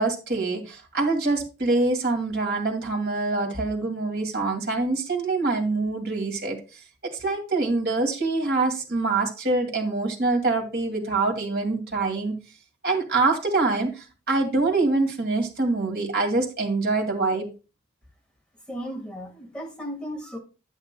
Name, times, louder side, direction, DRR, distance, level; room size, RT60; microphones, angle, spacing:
voice 1, 0.0-6.6 7.2-12.3 12.8-17.5, right 3 dB, 60° right, 2.3 m, -25 dB
voice 2, 18.7-20.4, equal, 5° left, 1.7 m, -35 dB
10.5 x 9.3 x 2.2 m
head